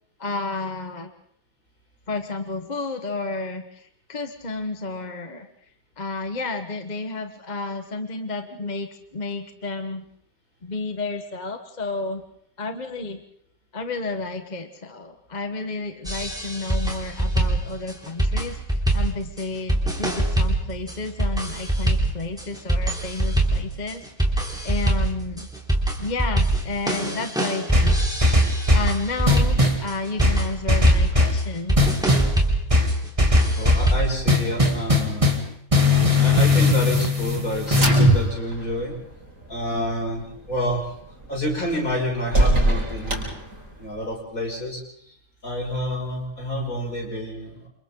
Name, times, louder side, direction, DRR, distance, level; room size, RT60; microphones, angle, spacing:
voice 1, 0.2-1.1 2.1-5.5 6.0-10.0 10.6-12.2 12.6-13.2 13.7-25.5 26.0-28.3 28.7-31.8, left 3 dB, 30° left, 7 dB, 1.2 m, -31 dB
sound 1, 16.0-34.2, right 1 dB, ahead, 3.1 m, -24 dB
sound 2, 27.7-28.9 29.3-29.8 30.2-31.4 31.8-32.3 32.7-33.9 34.3-35.5 35.7-38.2, left 2 dB, 20° right, 2.3 m, -19 dB
voice 2, 33.5-35.3 36.2-39.0 39.5-40.2 40.5-40.8 41.3-43.3 43.8-44.8 45.0-45.1 45.4-47.7, equal, 65° left, -1 dB, 6.5 m, -28 dB
sound 3, 37.1-44.1, right 1 dB, 60° right, 5.6 m, -28 dB
29.0 x 27.0 x 3.8 m, 0.66 s
omnidirectional pair, 1.6 m